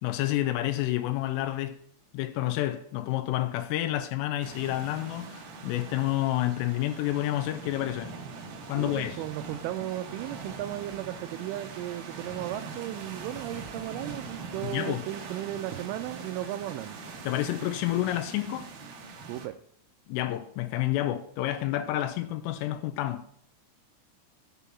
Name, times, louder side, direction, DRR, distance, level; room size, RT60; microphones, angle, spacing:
voice 1, 0.0-1.8 2.1-8.2 8.7-9.2 14.7-15.0 17.2-18.7 20.1-23.3, left 14 dB, 80° left, 3.2 m, -29 dB
sound 1, 4.4-19.5, right 4 dB, 65° right, 2.5 m, -42 dB
voice 2, 8.8-17.0 19.3-19.6, right 14 dB, 85° right, 2.9 m, -35 dB
8.3 x 5.7 x 7.0 m
omnidirectional pair, 5.9 m